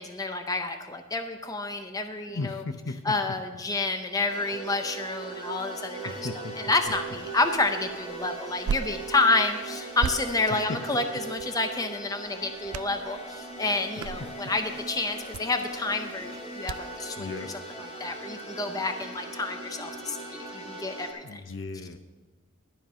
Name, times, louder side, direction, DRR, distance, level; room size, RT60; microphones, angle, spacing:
voice 1, 0.0-2.6 3.0-6.2 6.6-17.3 17.8-21.4, left 3 dB, 15° left, 6 dB, 0.6 m, -29 dB
voice 2, 2.3-3.2 6.0-6.5 10.5-10.8 14.4-14.5 17.2-17.5 21.2-22.0, left 3 dB, 60° left, 9 dB, 0.7 m, -36 dB
sound 1, 4.3-21.1, right 2 dB, 30° left, 3.2 m, -40 dB
sound 2, 6.8-17.0, right 7 dB, 85° right, 0.3 m, -40 dB
12.0 x 5.3 x 7.5 m, 1.2 s
head